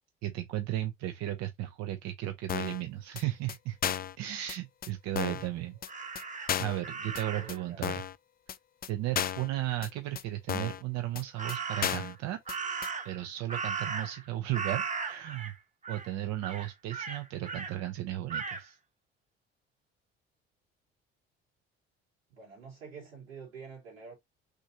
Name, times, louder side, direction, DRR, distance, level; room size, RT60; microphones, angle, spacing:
voice 1, 0.2-3.8 4.2-5.8 6.6-8.0 8.9-12.4 13.0-15.5 15.9-18.8, right 14 dB, 65° right, 0.7 m, -35 dB
sound 1, 2.5-2.8 3.2-3.3 3.5-3.6 3.8-4.2 4.5-4.6 4.8-4.9 5.2-5.5 5.8-5.9 6.2-6.3 6.5-6.8 7.2-7.3 7.5-7.6 7.8-8.1 8.5-8.6 8.8-8.9 9.2-9.5 9.8-9.9 10.2-10.3 10.5-10.8 11.2-11.3 11.5-11.6 11.8-12.2 12.5-12.6 12.8-12.9, left 9 dB, 30° left, 0.5 m, -33 dB
Crow, 5.9-7.6 11.4-12.1 12.5-14.3 14.5-15.5 15.8-16.1 16.4-17.7 18.3-18.6, right 5 dB, 25° right, 1.0 m, -37 dB
voice 2, 7.3-7.9 22.3-24.1, right 5 dB, 90° right, 2.8 m, -48 dB
6.3 x 2.7 x 2.7 m
hypercardioid pair, 55°, 29 cm